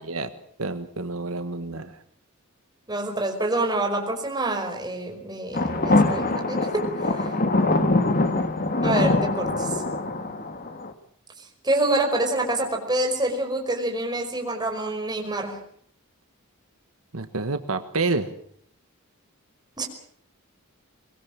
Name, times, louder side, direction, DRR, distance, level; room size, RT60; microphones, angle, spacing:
voice 1, 0.6-2.0 17.1-18.3, right 3 dB, 75° right, 9 dB, 1.4 m, -28 dB
voice 2, 2.9-7.3 8.8-9.7 11.6-15.6 19.8-19.9, right 2 dB, 20° right, 3 dB, 5.3 m, -27 dB
sound 1, 5.5-10.9, left 2 dB, 40° left, 2.0 m, -23 dB
23.5 x 22.0 x 7.4 m, 0.64 s
head